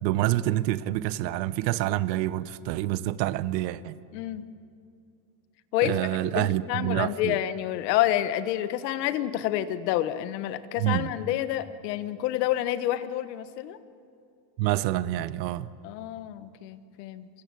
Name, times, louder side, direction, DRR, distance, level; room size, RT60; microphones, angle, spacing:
voice 1, 0.0-4.0 5.8-7.3 10.8-11.1 14.6-15.7, right 15 dB, 80° right, 1.0 m, -27 dB
voice 2, 4.1-4.4 5.7-6.0 6.3-13.8 15.8-17.3, left 13 dB, 75° left, 1.4 m, -28 dB
24.0 x 23.5 x 7.7 m
cardioid pair, 155°, 49 cm